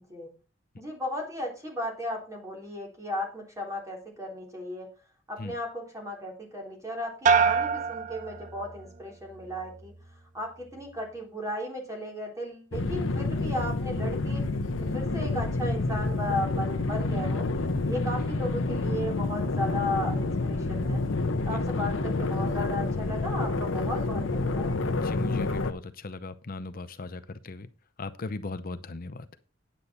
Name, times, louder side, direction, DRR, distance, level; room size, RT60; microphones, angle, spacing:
voice 1, 0.8-4.9 5.3-9.9 10.3-14.4 14.9-17.4 17.9-21.0 21.5-24.7, left 1 dB, 15° right, 0 dB, 3.6 m, -35 dB
sound 1, 7.3-9.0 9.4-10.0, right 6 dB, 40° right, 0.8 m, -26 dB
sound 2, 12.7-25.7, left 2 dB, 85° left, 0.9 m, -28 dB
voice 2, 25.0-27.7 28.0-29.3, left 3 dB, 50° left, 12 dB, 0.7 m, -38 dB
9.8 x 8.8 x 4.1 m, 0.35 s
head